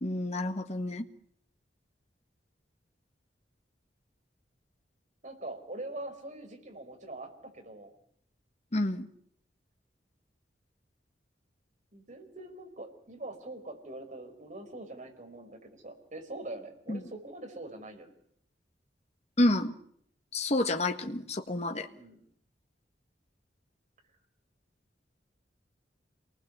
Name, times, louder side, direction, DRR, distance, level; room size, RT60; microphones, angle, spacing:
voice 1, 0.0-1.0 8.7-9.1 16.9-17.0 19.4-19.7 20.3-21.9, left 1 dB, 40° left, 6 dB, 1.6 m, -29 dB
voice 2, 5.2-7.9 11.9-18.1 21.9-22.2, right 2 dB, 45° right, 5 dB, 5.3 m, -43 dB
28.5 x 20.0 x 8.2 m, 0.67 s
head